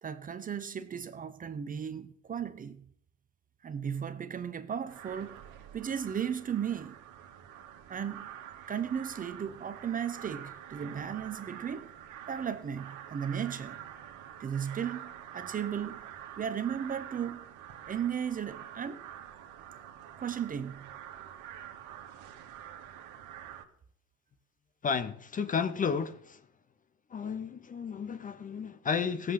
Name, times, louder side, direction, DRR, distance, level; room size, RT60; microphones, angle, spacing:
voice 1, 0.0-2.9 3.6-5.4 5.7-7.0 7.9-8.3 8.7-11.9 12.3-13.8 14.4-16.1 16.4-17.5 17.9-19.0 20.2-20.9, right 8 dB, 20° right, 0.8 m, -35 dB
sound 1, 4.9-23.6, right 10 dB, 50° right, 2.0 m, -47 dB
voice 2, 24.8-26.4 27.1-29.3, left 6 dB, 20° left, 0.8 m, -32 dB
16.5 x 7.8 x 5.8 m
hypercardioid pair, 95°, 40 cm